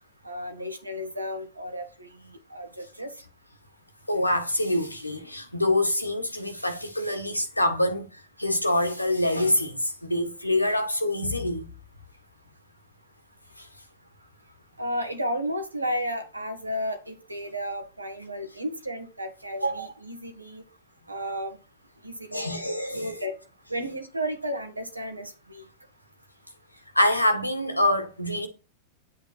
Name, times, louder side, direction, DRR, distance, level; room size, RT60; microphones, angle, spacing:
voice 1, 0.2-2.1 2.5-3.1 14.8-20.6 21.1-21.6 22.0-22.6 22.9-23.4 23.7-25.6, equal, 85° right, 2.3 m, -33 dB
voice 2, 4.1-11.7 13.6-13.7 22.3-23.2 27.0-28.5, left 1 dB, 85° left, 1.7 m, -25 dB
10.0 x 8.2 x 4.5 m
figure-of-eight pair, 90°, 0 cm